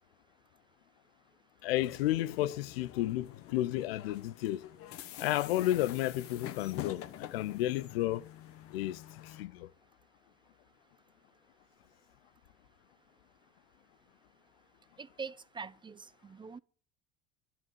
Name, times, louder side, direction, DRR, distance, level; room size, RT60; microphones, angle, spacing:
voice 1, 1.6-4.6 5.2-8.3 8.7-9.7, left 15 dB, 80° left, 0.6 m, -32 dB
sound 1, 1.8-9.4, left 12 dB, 50° left, 1.2 m, -47 dB
voice 2, 15.0-16.6, right 5 dB, 15° right, 0.4 m, -44 dB
11.0 x 5.8 x 8.9 m
hypercardioid pair, 85°, 29 cm